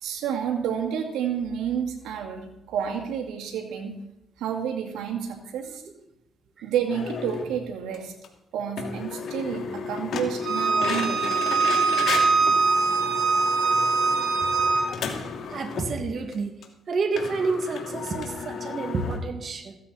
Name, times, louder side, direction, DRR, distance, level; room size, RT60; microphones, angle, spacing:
voice 1, 0.0-3.9 4.4-5.8 6.6-8.1 8.5-11.2, right 8 dB, 90° right, 3 dB, 2.1 m, -30 dB
sound 1, 6.9-7.5 7.9-8.0 8.2-8.3 8.8-15.9 16.3-16.4 16.6-16.7 17.2-19.2, left 6 dB, 65° left, 2.6 m, -33 dB
Bowed string instrument, 10.4-14.9, right 4 dB, 65° right, 4.8 m, -22 dB
voice 2, 15.5-16.6 16.9-19.8, right 4 dB, 50° right, 5 dB, 2.1 m, -29 dB
16.0 x 14.0 x 4.2 m, 0.85 s
cardioid pair, 90°, 0 cm